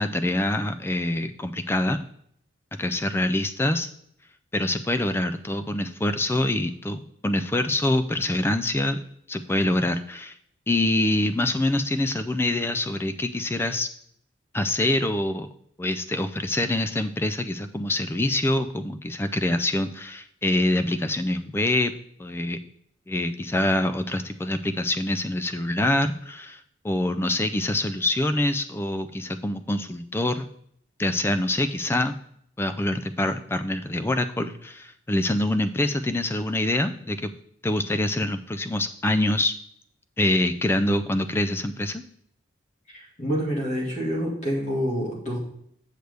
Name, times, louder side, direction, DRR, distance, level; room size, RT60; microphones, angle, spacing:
voice 1, 0.0-2.0 2.8-3.9 4.5-9.0 9.3-10.3 10.7-13.9 14.5-15.5 15.8-21.9 22.2-22.6 23.1-30.5 31.0-32.2 32.6-37.3 37.6-39.5 40.2-42.0, left 1 dB, 10° left, 10 dB, 0.3 m, -25 dB
voice 2, 42.9-45.4, equal, 35° left, -2 dB, 2.0 m, -27 dB
7.9 x 6.6 x 3.4 m, 0.69 s
head